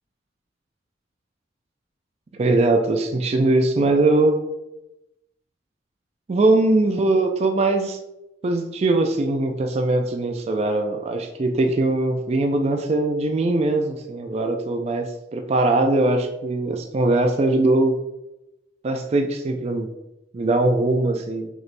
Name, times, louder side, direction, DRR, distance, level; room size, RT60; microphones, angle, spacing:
voice 1, 2.4-4.4 6.3-8.0 8.4-18.0 18.8-19.9 20.3-21.5, right 2 dB, 35° right, 4 dB, 0.3 m, -21 dB
4.1 x 3.0 x 3.3 m, 0.92 s
head